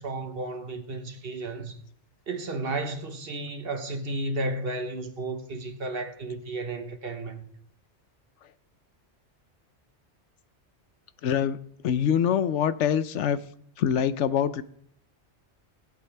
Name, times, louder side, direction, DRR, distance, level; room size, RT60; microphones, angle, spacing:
voice 1, 0.0-1.8 2.3-7.5, right 2 dB, 55° right, 1.3 m, -33 dB
voice 2, 11.2-11.6 11.8-13.4 13.8-14.6, left 8 dB, 90° left, 1.0 m, -24 dB
20.0 x 8.3 x 3.4 m
omnidirectional pair, 1.2 m